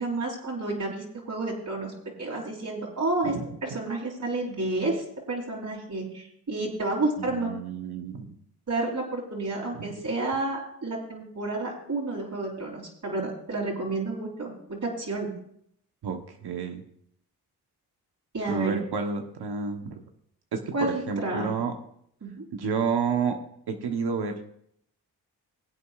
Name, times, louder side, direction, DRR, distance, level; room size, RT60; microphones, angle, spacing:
voice 1, 0.0-1.9 2.2-3.4 3.6-7.5 8.7-15.3 18.3-18.8 20.7-21.5 22.2-22.5, right 2 dB, 50° right, -5 dB, 3.6 m, -30 dB
voice 2, 7.2-8.3 9.7-9.9 16.0-16.8 18.5-20.0 20.5-21.7 22.5-23.4 23.7-24.4, right 5 dB, 75° right, 4 dB, 1.2 m, -30 dB
20.5 x 8.2 x 2.5 m, 0.69 s
cardioid pair, 55°, 40 cm